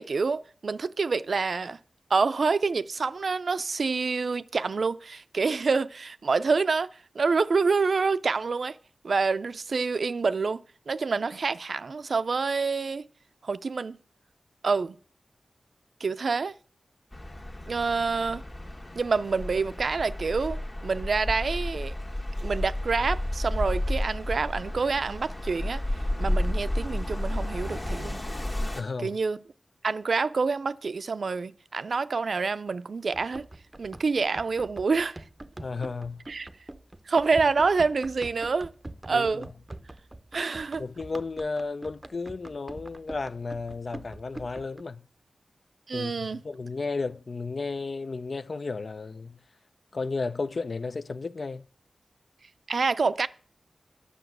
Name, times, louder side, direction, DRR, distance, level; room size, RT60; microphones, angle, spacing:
voice 1, 0.0-1.8 2.1-8.8 9.0-13.1 13.4-14.0 14.6-15.0 16.0-16.5 17.7-18.4 19.0-21.9 22.4-25.8 26.2-28.2 29.0-29.4 29.8-33.5 33.8-35.2 36.3-36.5 37.1-38.7 39.1-39.5 40.3-40.8 45.9-46.4 52.7-53.3, right 4 dB, 65° right, 0.4 m, -27 dB
sound 1, 17.1-28.8, left 1 dB, 30° left, 1.4 m, -32 dB
voice 2, 28.7-29.2 35.6-36.3 39.1-39.5 40.8-45.1 45.9-49.4 49.9-51.6, left 3 dB, 55° left, 0.5 m, -33 dB
Run, 33.1-44.8, right 1 dB, 20° right, 0.6 m, -44 dB
10.0 x 6.1 x 7.8 m
wide cardioid pair, 100°, 0 cm